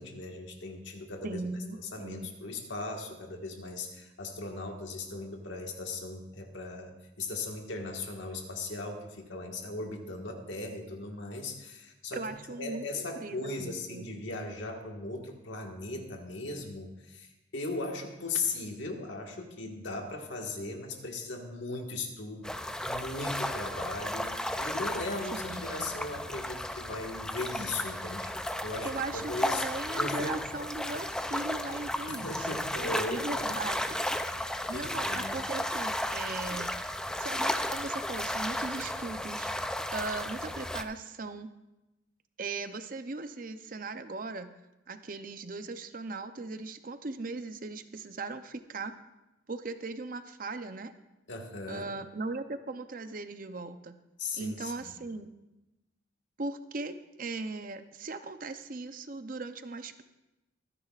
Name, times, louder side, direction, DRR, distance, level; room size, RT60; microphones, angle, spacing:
voice 1, 0.0-1.4 1.8-12.3 12.6-28.3 28.6-29.7 29.9-30.4 32.1-33.5 34.7-35.3 51.3-51.9 54.2-54.9, left 3 dB, 70° left, 2 dB, 1.6 m, -38 dB
voice 2, 1.2-2.3 12.1-14.1 25.3-25.8 28.8-32.6 33.1-34.0 34.7-36.8 37.2-39.5 39.9-41.5 42.4-44.5 44.9-48.9 49.5-50.9 51.7-53.9 54.3-55.3 56.4-60.0, right 3 dB, 45° right, 9 dB, 0.6 m, -38 dB
sound 1, 22.4-40.8, left 1 dB, 5° left, 0.4 m, -34 dB
24.0 x 9.9 x 2.4 m, 0.99 s
head